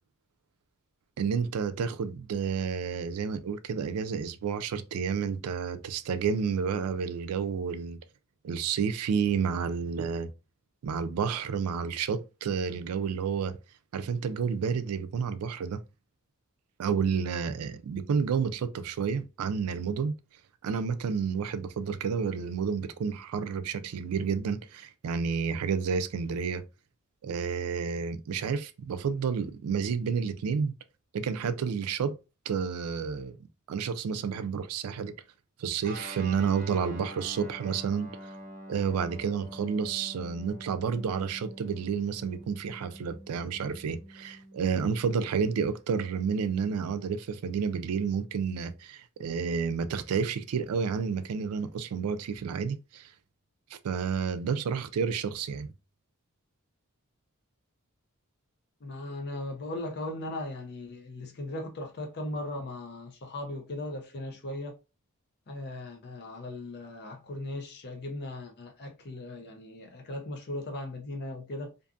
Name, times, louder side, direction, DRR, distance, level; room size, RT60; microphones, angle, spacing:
voice 1, 1.2-8.0 8.4-10.3 10.8-13.5 13.9-15.8 16.8-20.2 20.6-26.6 27.2-30.7 31.1-32.2 32.5-33.4 33.7-35.1 35.6-38.1 38.7-53.1 53.8-55.7, right 6 dB, 85° right, 0.4 m, -30 dB
Guitar, 35.8-45.7, right 1 dB, 40° right, 0.7 m, -46 dB
voice 2, 58.8-64.7 65.5-71.7, left 1 dB, 50° left, 0.5 m, -38 dB
2.5 x 2.4 x 2.5 m
head